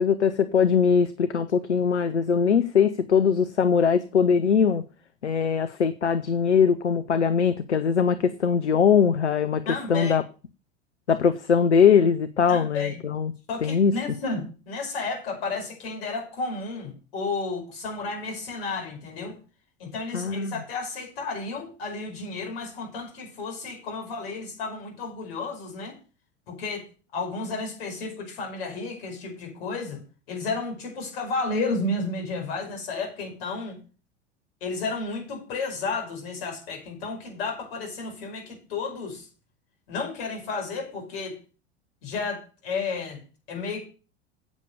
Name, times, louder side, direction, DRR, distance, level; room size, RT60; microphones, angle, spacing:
voice 1, 0.0-4.8 5.2-9.6 9.9-10.2 11.1-13.3 13.6-13.9 20.1-20.5, left 6 dB, 80° left, 12 dB, 0.7 m, -21 dB
voice 2, 9.7-10.2 12.5-13.0 13.5-19.4 19.8-25.9 26.5-26.9 27.1-30.0 30.3-33.8 34.6-39.3 39.9-41.4 42.0-43.2 43.5-43.9, left 3 dB, 60° left, 3 dB, 5.3 m, -32 dB
8.2 x 7.1 x 6.6 m, 0.35 s
figure-of-eight pair, 80°, 34 cm